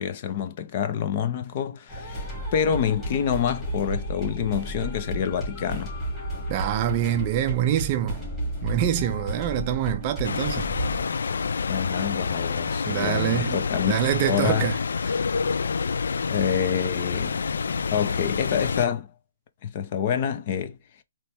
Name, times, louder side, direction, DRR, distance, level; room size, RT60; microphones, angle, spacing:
voice 1, 0.0-6.0 11.7-13.9 14.3-14.7 16.3-17.4 17.9-19.1 19.6-20.8, left 8 dB, 30° left, 0.6 m, -27 dB
sound 1, 1.9-11.0, equal, 5° left, 2.6 m, -33 dB
voice 2, 6.5-8.3 8.6-10.7 12.8-13.6 13.9-14.8 15.1-15.2, right 12 dB, 25° right, 0.4 m, -25 dB
sound 2, 10.2-18.9, left 5 dB, 75° left, 0.3 m, -28 dB
4.4 x 3.0 x 3.5 m
hypercardioid pair, 170°, 0 cm